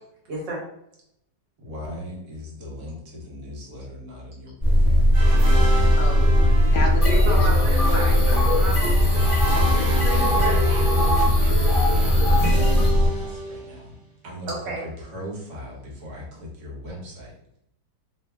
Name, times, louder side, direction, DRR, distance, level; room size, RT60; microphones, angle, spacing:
voice 1, 0.3-0.6 7.1-9.2 9.7-10.6 14.5-14.8, right 1 dB, 80° right, -4 dB, 1.6 m, -32 dB
voice 2, 1.6-5.2 9.8-13.9 14.2-14.5 14.8-17.3, equal, 60° right, -2 dB, 1.3 m, -38 dB
sound 1, 4.6-13.1, equal, 5° right, 1.1 m, -19 dB
sound 2, 5.1-14.0, left 1 dB, 25° right, 1.1 m, -32 dB
voice 3, 6.0-8.5 10.1-10.2, left 2 dB, 65° left, 1 dB, 1.1 m, -33 dB
sound 3, 7.0-12.9, left 1 dB, 25° left, 0.9 m, -26 dB
3.0 x 2.6 x 3.3 m, 0.74 s
omnidirectional pair, 1.9 m